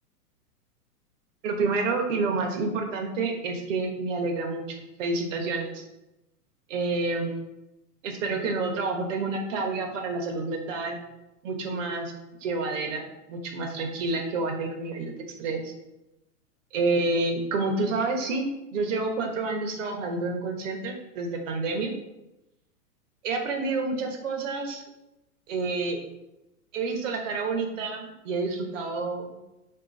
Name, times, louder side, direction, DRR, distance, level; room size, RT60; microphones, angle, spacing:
voice 1, 1.4-5.8 6.7-7.5 8.0-11.0 11.4-12.1 12.4-15.7 16.7-21.9 23.2-24.8 25.5-26.0 26.7-29.3, right 3 dB, 50° right, 3 dB, 1.4 m, -29 dB
4.7 x 4.2 x 5.5 m, 0.96 s
hypercardioid pair, 145°, 47 cm